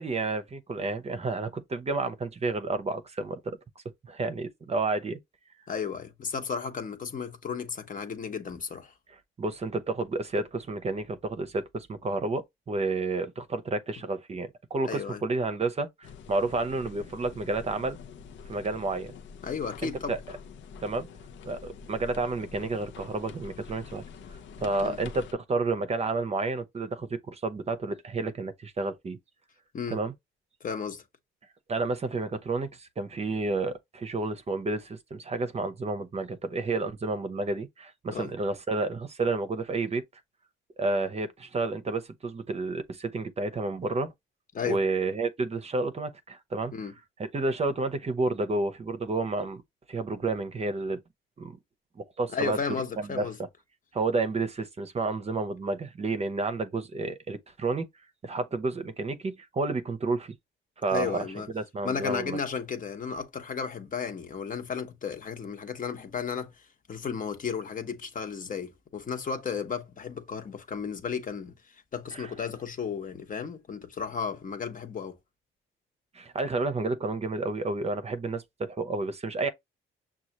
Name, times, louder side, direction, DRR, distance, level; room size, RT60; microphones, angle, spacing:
voice 1, 0.0-3.6 4.1-5.2 9.4-18.0 18.5-19.1 19.8-20.2 20.8-21.1 21.4-24.0 24.6-29.2 29.9-30.1 31.7-40.0 40.8-44.1 44.6-46.7 47.2-49.6 49.9-51.0 51.4-51.6 52.0-52.6 53.0-53.2 53.9-57.9 58.2-60.3 60.8-61.3 61.5-62.4 72.1-72.3 76.1-79.5, right 3 dB, 30° right, 0.7 m, -30 dB
voice 2, 5.7-8.9 14.8-15.2 19.4-20.2 24.8-25.0 29.7-30.0 30.6-31.0 38.1-38.3 44.5-44.8 46.7-46.9 52.3-53.4 60.9-61.5 61.8-75.2, left 6 dB, 40° left, 1.0 m, -34 dB
sound 1, 16.0-25.3, left 6 dB, 70° left, 0.7 m, -46 dB
6.1 x 2.3 x 2.9 m
cardioid pair, 90°, 20 cm